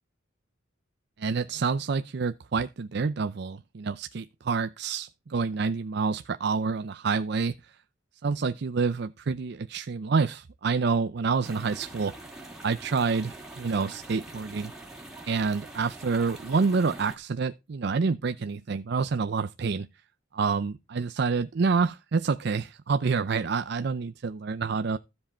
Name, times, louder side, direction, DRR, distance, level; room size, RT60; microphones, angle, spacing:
voice 1, 1.2-7.6 8.2-12.1 12.6-14.7 15.3-19.9 20.3-25.0, right 4 dB, 55° right, 0.5 m, -28 dB
sound 1, 11.4-17.2, right 2 dB, 5° right, 2.5 m, -44 dB
13.0 x 7.4 x 4.3 m
head